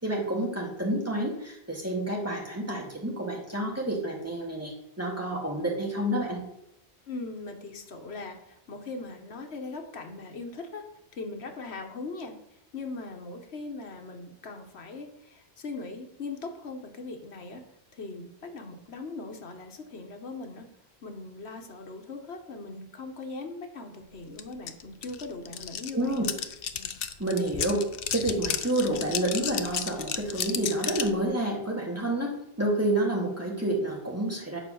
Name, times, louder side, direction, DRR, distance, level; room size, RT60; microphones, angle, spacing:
voice 1, 0.0-6.4 25.9-26.2 27.2-27.9 28.1-32.3 32.6-34.6, right 1 dB, 15° right, -1 dB, 2.1 m, -29 dB
voice 2, 7.1-10.8 11.1-12.3 12.7-17.6 17.9-20.7 21.0-26.2, left 3 dB, 85° left, 4 dB, 1.4 m, -40 dB
sound 1, 24.4-24.5 24.7-31.2, left 8 dB, 65° left, 0.9 m, -33 dB
9.3 x 4.9 x 6.3 m, 0.85 s
omnidirectional pair, 1.1 m